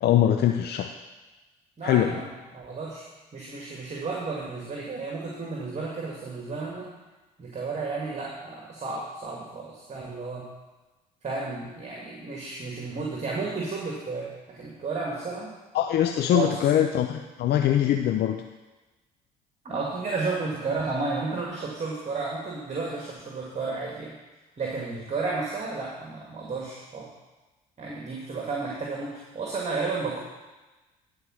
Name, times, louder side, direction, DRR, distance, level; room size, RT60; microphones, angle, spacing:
voice 1, 0.0-0.9 1.8-2.2 15.7-18.4, left 11 dB, 60° left, 5 dB, 0.6 m, -22 dB
voice 2, 1.8-3.1 3.3-6.9 7.4-10.5 11.2-15.5 16.3-16.8 19.6-24.1 24.6-27.1 27.8-30.2, right 3 dB, 35° right, -3 dB, 2.1 m, -32 dB
11.0 x 4.7 x 6.4 m, 1.2 s
hypercardioid pair, 60°, 19 cm